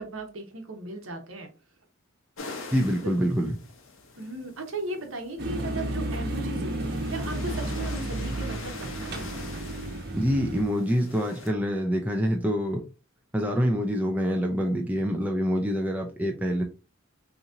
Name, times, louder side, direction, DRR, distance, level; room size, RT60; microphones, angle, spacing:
voice 1, 0.0-1.5 2.9-3.1 4.2-9.3, right 2 dB, 80° right, 4 dB, 1.0 m, -36 dB
sound 1, 2.4-11.5, left 3 dB, 75° left, 0.9 m, -44 dB
voice 2, 2.7-3.6 10.1-12.8 13.3-16.6, equal, 5° right, 1 dB, 0.4 m, -26 dB
sound 2, 5.4-10.6, right 1 dB, 50° right, 1.0 m, -32 dB
3.7 x 3.0 x 2.6 m, 0.31 s
head